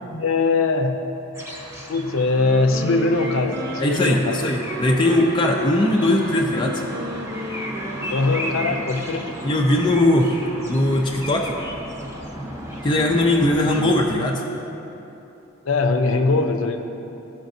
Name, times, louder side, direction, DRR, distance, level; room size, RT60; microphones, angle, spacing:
voice 1, 0.1-1.0 1.9-4.4 8.1-9.3 15.7-16.8, left 3 dB, 85° left, 5 dB, 0.6 m, -21 dB
sound 1, 1.3-14.0, equal, 15° right, 0.8 m, -34 dB
Wind instrument woodwind instrument, 2.2-8.7, equal, 50° right, 0.5 m, -34 dB
voice 2, 3.8-6.8 9.4-10.3 10.7-11.6 12.8-14.4, left 1 dB, 25° left, -1 dB, 0.4 m, -19 dB
13.5 x 5.1 x 2.6 m, 3.0 s
head